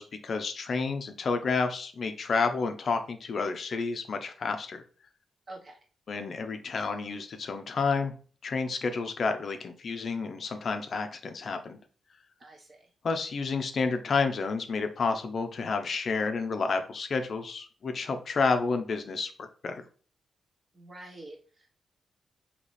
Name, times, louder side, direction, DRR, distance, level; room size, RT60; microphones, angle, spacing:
voice 1, 0.0-4.8 6.1-8.1 8.4-11.8 13.0-19.8, left 4 dB, 55° left, 7 dB, 0.5 m, -30 dB
voice 2, 5.5-5.8 12.4-12.9 20.7-21.7, right 2 dB, 35° right, 0 dB, 1.1 m, -47 dB
4.0 x 2.9 x 3.2 m, 0.40 s
cardioid pair, 105°, 0 cm